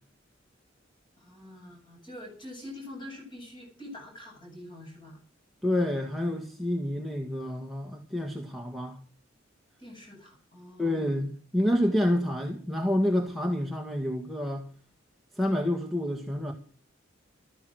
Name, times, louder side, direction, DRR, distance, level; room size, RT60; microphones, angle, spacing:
voice 1, 1.2-5.2 9.8-11.0, left 1 dB, 25° left, 8.0 m, -45 dB
voice 2, 5.6-9.0 10.8-14.7 15.3-16.5, left 1 dB, ahead, 1.8 m, -28 dB
14.0 x 12.5 x 6.4 m
head